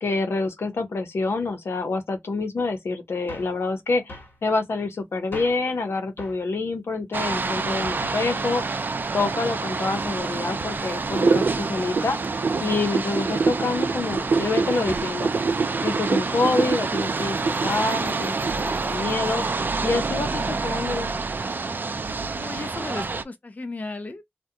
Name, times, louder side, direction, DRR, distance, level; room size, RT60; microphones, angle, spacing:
voice 1, 0.0-4.2 4.4-8.6 9.1-12.2 12.6-15.3 15.8-19.5 19.8-21.1, left 3 dB, 80° left, 0.7 m, -27 dB
sound 1, 3.3-3.6 4.1-4.4 5.3-5.7 6.2-6.5 7.3-7.6 8.0-8.3, left 2 dB, 60° left, 1.1 m, -40 dB
sound 2, 7.1-23.2, right 4 dB, 50° right, 0.4 m, -28 dB
sound 3, 11.1-18.9, right 4 dB, 80° right, 0.7 m, -25 dB
voice 2, 22.4-24.2, left 3 dB, 40° left, 0.4 m, -35 dB
2.2 x 2.1 x 2.7 m
cardioid pair, 50°, 4 cm